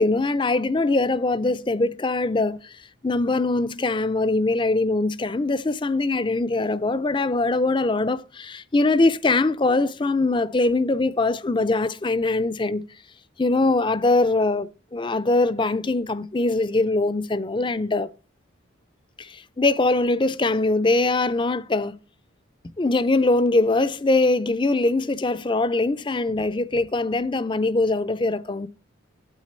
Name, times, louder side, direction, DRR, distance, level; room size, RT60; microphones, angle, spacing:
voice 1, 0.0-12.8 13.4-18.1 19.2-22.0 22.8-28.7, left 2 dB, 25° left, 0.4 m, -22 dB
9.0 x 8.9 x 4.3 m
head